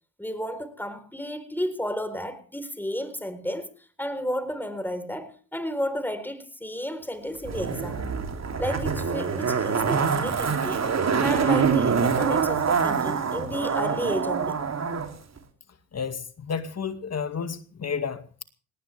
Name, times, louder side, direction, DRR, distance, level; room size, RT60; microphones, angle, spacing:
voice 1, 0.2-3.7 4.0-8.0 8.6-10.9 11.2-14.6, equal, 5° left, 4.2 m, -32 dB
Zipper (clothing), 7.4-15.1 15.4-15.5, right 6 dB, 45° right, 3.3 m, -25 dB
voice 2, 15.9-18.4, left 6 dB, 40° left, 2.3 m, -31 dB
19.0 x 18.5 x 3.5 m
hypercardioid pair, 55°, 38 cm